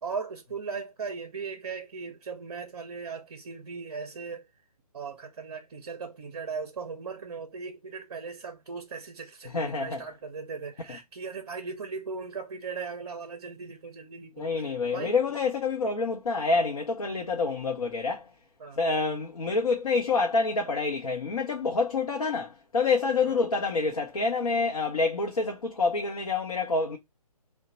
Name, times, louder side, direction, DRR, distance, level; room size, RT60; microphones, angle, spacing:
voice 1, 0.0-4.5 4.9-15.2 18.6-18.8 23.3-23.4, right 5 dB, 45° right, 0.5 m, -38 dB
voice 2, 9.5-10.0 14.4-18.3 18.8-27.0, left 4 dB, 60° left, 0.7 m, -27 dB
2.8 x 2.1 x 4.1 m
figure-of-eight pair, 145°, 20 cm